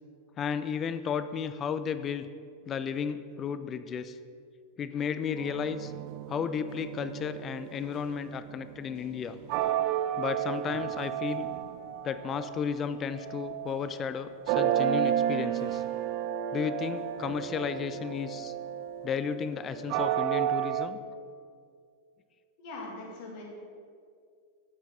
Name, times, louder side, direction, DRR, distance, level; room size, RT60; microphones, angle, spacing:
voice 1, 0.4-2.3 2.7-4.2 4.8-5.9 6.3-9.4 10.2-11.5 12.0-15.8 16.5-18.5 19.0-21.0, left 7 dB, 25° left, 12 dB, 0.4 m, -33 dB
sound 1, 5.4-12.7 13.1-14.1 14.5-20.9, right 11 dB, 45° right, 0.3 m, -32 dB
voice 2, 22.6-23.4, left 2 dB, 50° left, -2 dB, 2.0 m, -41 dB
10.5 x 7.3 x 3.8 m, 2.3 s
figure-of-eight pair, 90°, 0 cm